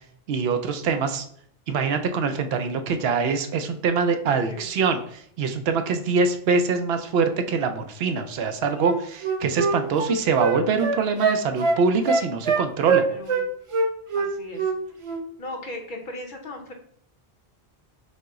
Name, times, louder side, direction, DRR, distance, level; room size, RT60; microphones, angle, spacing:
voice 1, 0.3-1.2 1.7-13.0, right 5 dB, 75° right, 7 dB, 0.8 m, -24 dB
voice 2, 4.3-4.7 13.1-13.4 14.1-14.7 15.4-16.7, left 2 dB, 55° left, 3 dB, 0.8 m, -37 dB
Wind instrument woodwind instrument, 8.8-13.4 13.7-14.8 15.0-15.2, right 4 dB, 45° right, 0.4 m, -23 dB
5.2 x 2.0 x 3.6 m, 0.67 s
omnidirectional pair, 1.1 m